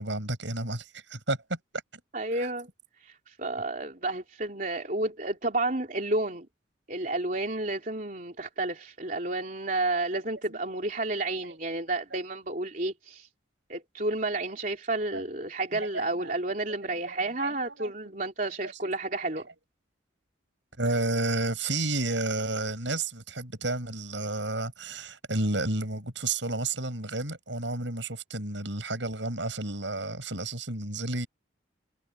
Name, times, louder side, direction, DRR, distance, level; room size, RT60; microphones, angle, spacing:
voice 1, 0.0-1.4 2.4-2.5 10.5-10.6 15.1-15.2 15.7-16.4 17.4-17.9 18.6-18.7 20.8-31.3, right 2 dB, 75° right, 7.0 m, -31 dB
voice 2, 2.1-2.7 3.0-6.5 6.9-13.3 13.7-19.5, right 2 dB, 45° right, 3.5 m, -31 dB
head